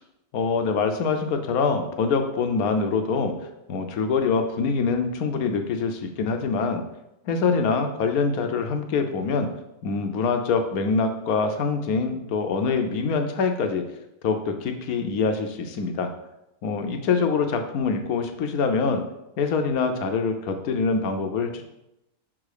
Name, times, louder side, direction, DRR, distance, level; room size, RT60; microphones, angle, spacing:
voice 1, 0.3-3.3 3.7-6.8 7.2-9.5 9.8-13.8 14.2-16.1 16.6-19.0 19.4-21.7, left 4 dB, 75° left, 6 dB, 1.2 m, -24 dB
5.6 x 3.7 x 4.9 m, 0.88 s
omnidirectional pair, 1.6 m